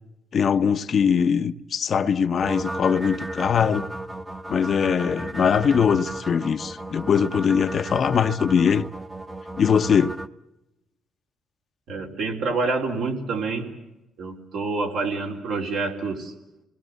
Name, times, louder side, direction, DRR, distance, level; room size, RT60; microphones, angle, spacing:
voice 1, 0.3-3.9 4.5-8.8 9.6-10.2, left 7 dB, 50° left, 0.9 m, -21 dB
sound 1, 2.4-10.3, right 1 dB, 15° right, 0.9 m, -34 dB
voice 2, 11.9-13.7 14.2-16.3, right 3 dB, 80° right, 4.0 m, -27 dB
28.5 x 20.0 x 8.2 m
cardioid pair, 90°, 0 cm